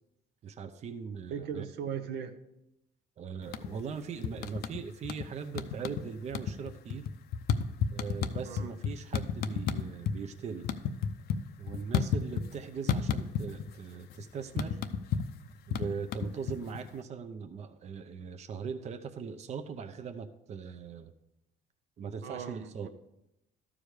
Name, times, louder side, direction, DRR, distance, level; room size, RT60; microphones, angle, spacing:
voice 1, 0.4-1.7 3.2-7.1 7.9-10.7 11.6-14.8 15.7-21.1 22.0-22.9, right 6 dB, 40° right, 9 dB, 0.6 m, -40 dB
voice 2, 1.3-2.3 8.5-8.7 22.2-22.9, right 7 dB, 75° right, 8 dB, 0.8 m, -38 dB
sound 1, 3.4-3.9 4.2-5.3 5.5-6.0 6.3-10.2 10.5-12.6 12.9-13.7 14.0-16.9, left 7 dB, 70° left, 0.6 m, -31 dB
13.0 x 4.9 x 4.9 m, 0.87 s
cardioid pair, 110°, 17 cm